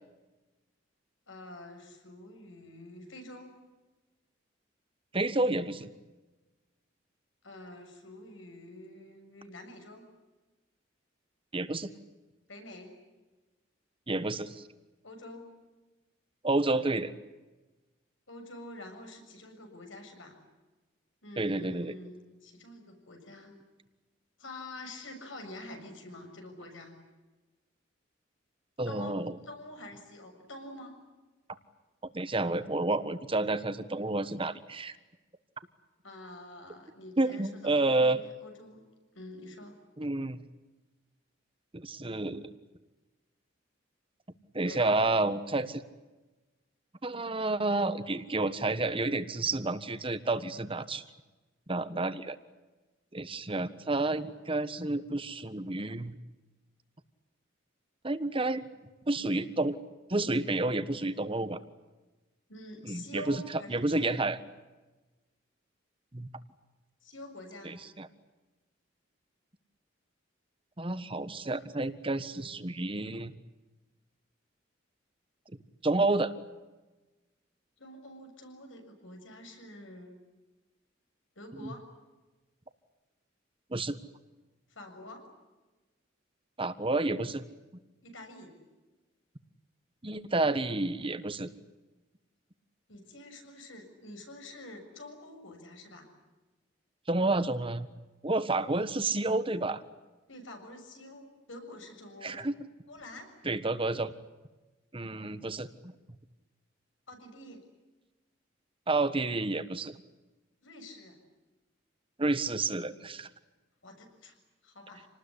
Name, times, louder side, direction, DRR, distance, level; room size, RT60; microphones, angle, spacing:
voice 1, 1.3-3.5 7.4-10.1 12.5-12.9 15.0-15.5 18.3-20.4 21.2-23.6 24.4-27.0 28.9-31.0 36.0-38.8 39.1-39.8 44.6-45.0 62.5-64.1 67.0-67.8 77.8-80.2 81.3-81.9 84.7-85.2 88.0-88.5 92.9-96.1 100.3-102.4 102.9-103.3 107.1-107.6 110.6-111.2 113.8-114.3 114.6-115.1, left 1 dB, 80° left, 4 dB, 6.9 m, -47 dB
voice 2, 5.1-5.9 11.5-11.9 14.1-14.6 16.4-17.1 21.4-21.9 28.8-29.4 32.1-34.9 37.2-38.2 40.0-40.4 41.7-42.5 44.5-45.8 47.0-51.0 51.7-52.4 53.1-56.1 58.0-58.6 59.1-59.8 60.1-61.6 62.8-64.4 66.1-66.3 67.6-68.1 70.8-73.3 75.8-76.3 81.5-81.7 83.7-84.0 86.6-87.4 90.0-91.5 97.1-97.9 98.2-99.8 102.2-102.5 103.4-104.1 104.9-105.9 108.9-110.0 112.2-113.3, right 2 dB, 30° right, 12 dB, 1.5 m, -30 dB
28.0 x 19.5 x 10.0 m, 1.2 s
head